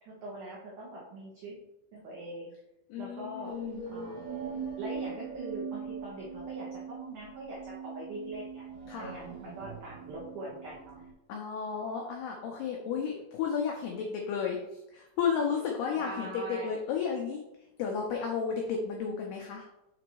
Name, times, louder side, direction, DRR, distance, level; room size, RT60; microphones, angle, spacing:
voice 1, 0.0-1.6 1.9-2.5 3.0-3.6 3.9-4.3 4.8-8.7 9.0-11.0 16.0-16.7, right 1 dB, 90° right, -4 dB, 1.8 m, -42 dB
voice 2, 2.9-3.8 8.9-9.2 11.3-17.4 17.8-19.7, left 6 dB, 90° left, 0 dB, 2.2 m, -33 dB
sound 1, 3.4-11.1, right 6 dB, 75° right, 2.8 m, -41 dB
7.1 x 4.0 x 4.6 m, 0.90 s
omnidirectional pair, 5.6 m